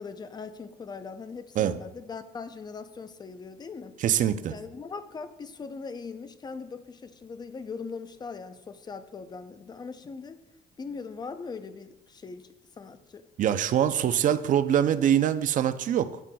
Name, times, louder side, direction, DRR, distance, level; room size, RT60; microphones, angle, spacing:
voice 1, 0.0-3.9 4.5-10.4 10.8-12.5 12.8-13.2, left 5 dB, 25° left, 10 dB, 0.5 m, -40 dB
voice 2, 4.0-4.6 13.4-16.2, right 10 dB, 50° right, 12 dB, 0.5 m, -24 dB
10.0 x 7.4 x 2.3 m, 0.96 s
cardioid pair, 110°, 17 cm